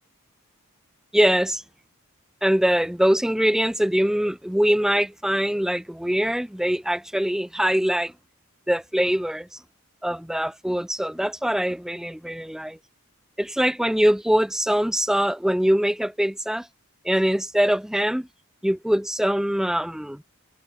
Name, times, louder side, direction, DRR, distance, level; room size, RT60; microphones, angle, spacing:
voice 1, 1.1-1.6 2.4-8.1 8.7-9.6 10.0-12.8 13.4-16.7 17.0-18.3 18.6-20.2, equal, ahead, 0.4 m, -23 dB
head